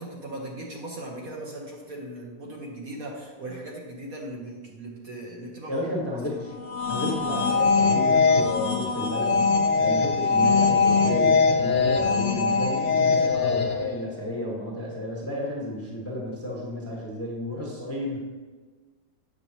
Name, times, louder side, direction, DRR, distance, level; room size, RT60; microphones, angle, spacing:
voice 1, 0.0-5.8, right 1 dB, 55° right, -2 dB, 1.2 m, -38 dB
voice 2, 5.7-6.5 6.9-18.2, left 1 dB, 10° left, -3 dB, 0.9 m, -32 dB
sound 1, 6.5-13.9, left 4 dB, 60° left, 0.8 m, -22 dB
8.1 x 6.7 x 2.8 m, 1.4 s
omnidirectional pair, 2.0 m